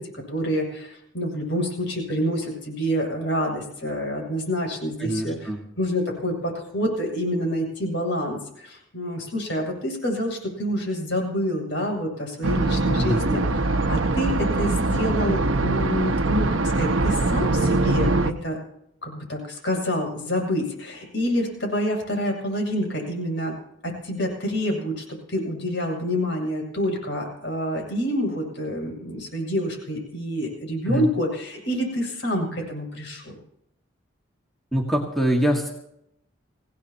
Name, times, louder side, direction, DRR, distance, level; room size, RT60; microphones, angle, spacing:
voice 1, 0.0-5.5 5.8-18.6 19.0-23.5 23.8-33.4, equal, 65° left, 0 dB, 7.5 m, -27 dB
voice 2, 5.0-5.6 12.9-13.2 30.9-31.1 34.7-35.7, equal, ahead, -1 dB, 2.1 m, -23 dB
sound 1, 12.4-18.3, right 2 dB, 85° right, 1.1 m, -22 dB
27.0 x 17.5 x 3.0 m, 0.75 s
head